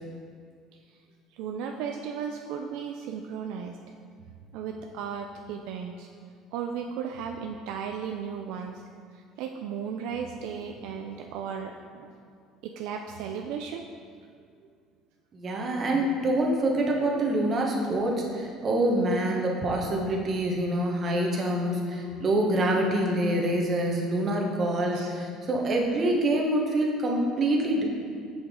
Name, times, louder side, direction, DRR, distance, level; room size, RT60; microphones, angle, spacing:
voice 1, 1.3-3.8 4.5-6.1 6.5-8.8 9.1-12.1 12.6-13.8 24.9-25.1, right 7 dB, 75° right, 3 dB, 0.3 m, -35 dB
voice 2, 15.3-27.8, right 1 dB, 40° right, 0 dB, 1.1 m, -26 dB
Telephone, 21.1-23.1, left 9 dB, 75° left, 0.7 m, -43 dB
5.9 x 5.1 x 3.7 m, 2.1 s
supercardioid pair, 100°, 0 cm